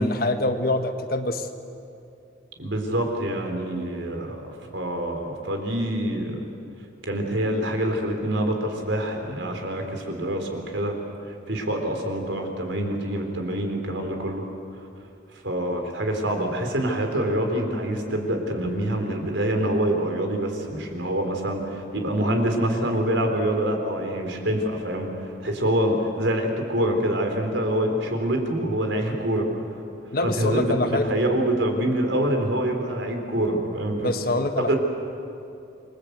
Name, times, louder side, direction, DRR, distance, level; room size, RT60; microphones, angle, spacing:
voice 1, 0.0-1.5 30.1-31.1 34.0-34.7, left 2 dB, 50° left, 6 dB, 1.6 m, -25 dB
voice 2, 2.6-6.4 7.0-11.0 11.5-14.4 15.3-29.6 30.2-30.8 31.0-34.1 34.7-34.8, right 1 dB, 80° right, 3 dB, 4.1 m, -26 dB
28.0 x 22.5 x 8.2 m, 2.6 s
head